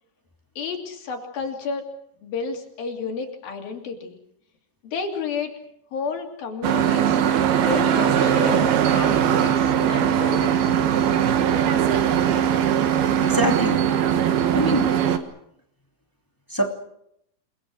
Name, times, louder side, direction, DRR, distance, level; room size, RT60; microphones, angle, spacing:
voice 1, 0.6-1.9 2.2-4.2 4.8-5.5 5.9-7.2 7.6-10.7, left 5 dB, 75° left, 3 dB, 4.6 m, -31 dB
sound 1, 6.6-15.2, right 9 dB, 85° right, 3.4 m, -20 dB
voice 2, 13.2-13.8 14.5-14.9 16.5-16.7, equal, 5° left, 3 dB, 1.9 m, -23 dB
29.0 x 21.0 x 6.4 m, 0.77 s
omnidirectional pair, 4.3 m